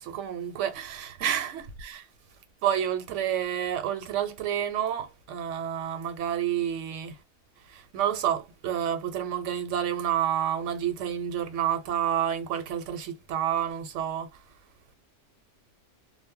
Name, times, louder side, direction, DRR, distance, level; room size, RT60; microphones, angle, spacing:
voice 1, 0.0-2.0 2.6-7.2 7.6-14.5, right 10 dB, 90° right, 1.0 m, -29 dB
2.1 x 2.0 x 3.6 m
omnidirectional pair, 1.2 m